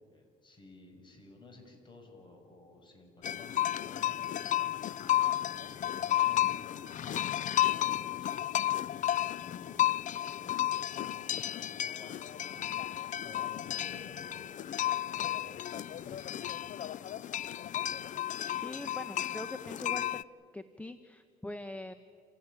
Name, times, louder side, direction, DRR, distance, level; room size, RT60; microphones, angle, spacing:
voice 1, 0.0-4.6 5.0-15.6 16.0-16.6, left 2 dB, 25° left, 3 dB, 6.3 m, -55 dB
sound 1, 3.2-20.2, left 12 dB, 50° left, 0.6 m, -33 dB
voice 2, 18.3-20.2 20.5-21.9, left 1 dB, 10° left, 9 dB, 0.9 m, -43 dB
28.5 x 16.0 x 9.9 m, 2.2 s
cardioid pair, 110°, 17 cm